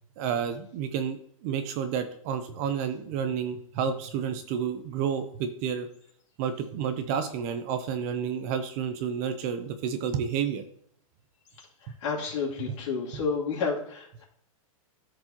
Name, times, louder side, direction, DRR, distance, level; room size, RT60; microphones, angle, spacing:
voice 1, 0.2-5.9 6.4-10.6 12.6-12.7, right 7 dB, 25° right, 9 dB, 0.5 m, -30 dB
voice 2, 12.0-14.2, left 5 dB, 55° left, -3 dB, 2.8 m, -30 dB
13.0 x 4.7 x 2.9 m, 0.67 s
hypercardioid pair, 165°, 18 cm